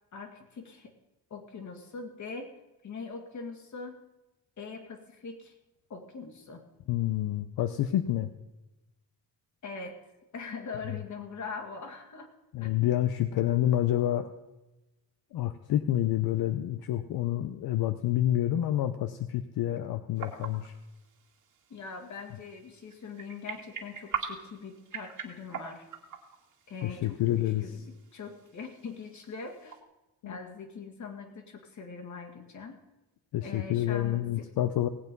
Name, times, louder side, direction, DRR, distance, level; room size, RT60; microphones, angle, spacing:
voice 1, 0.1-0.9 1.3-2.5 2.8-4.0 4.6-5.5 5.9-6.6 9.6-10.0 10.3-12.3 12.6-12.9 21.7-25.9 26.7-29.8 30.2-32.8 33.4-34.2, left 4 dB, 50° left, 4 dB, 2.2 m, -42 dB
voice 2, 6.9-8.3 12.5-14.3 15.3-20.7 26.8-27.6 30.2-30.4 33.3-34.9, left 13 dB, 80° left, 10 dB, 0.7 m, -28 dB
sound 1, 20.1-29.8, right 7 dB, 55° right, 2.1 m, -43 dB
17.5 x 8.3 x 5.3 m, 1.0 s
cardioid pair, 125°, 36 cm